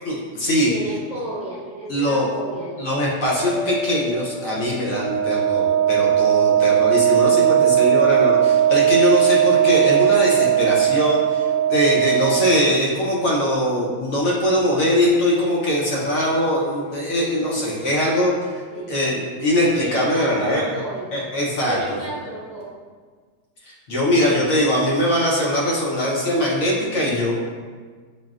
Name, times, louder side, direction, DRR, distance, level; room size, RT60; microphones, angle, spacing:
voice 1, 0.0-0.7 1.9-2.3 2.8-18.3 18.9-20.6 21.1-21.8 23.7-27.3, equal, 60° left, -4 dB, 1.0 m, -21 dB
voice 2, 0.7-2.8 17.3-18.1 18.7-19.0 19.8-21.3 21.6-22.6, right 1 dB, 5° right, -8 dB, 0.9 m, -33 dB
sound 1, 3.4-6.9 10.4-13.4, left 2 dB, 80° left, 1.3 m, -37 dB
Wind instrument woodwind instrument, 4.9-12.8, right 10 dB, 70° right, 1.0 m, -18 dB
6.1 x 2.2 x 2.4 m, 1.5 s
omnidirectional pair, 1.8 m